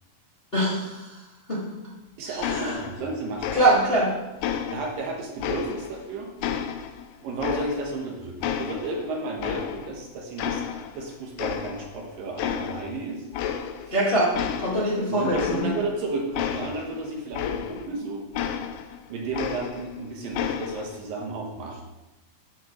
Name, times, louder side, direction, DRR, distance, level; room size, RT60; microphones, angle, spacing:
voice 1, 0.5-1.2 1.5-1.8 2.4-2.7 3.5-4.1 13.9-14.3 14.6-15.7, right 1 dB, 30° left, -7 dB, 1.0 m, -23 dB
voice 2, 2.2-3.5 4.7-6.3 7.2-13.2 13.9-14.0 15.1-18.4 19.1-21.8, right 3 dB, 75° right, 0 dB, 2.9 m, -33 dB
sound 1, 2.4-3.1 3.4-4.0 4.4-6.0 6.4-8.1 8.4-10.0 10.4-11.1 11.4-12.0 12.4-12.9 13.3-14.0 14.3-18.0 18.3-20.0 20.3-21.0, left 8 dB, 80° left, 2.0 m, -31 dB
12.5 x 6.1 x 3.1 m, 1.0 s
omnidirectional pair, 4.1 m